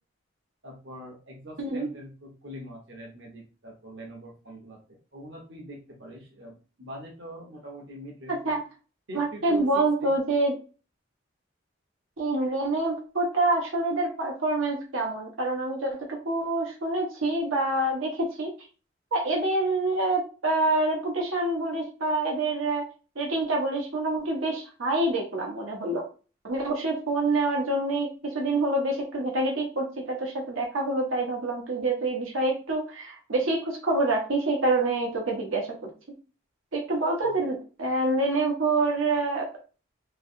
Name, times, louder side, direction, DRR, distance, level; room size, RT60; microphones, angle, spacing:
voice 1, 0.6-8.6 9.1-10.1 37.2-37.3, equal, 60° right, -1 dB, 0.9 m, -43 dB
voice 2, 9.1-10.5 12.2-18.5 19.1-22.9 23.2-26.0 26.4-35.7 36.7-39.5, right 2 dB, 80° right, 0 dB, 1.0 m, -26 dB
3.0 x 2.7 x 2.6 m, 0.35 s
head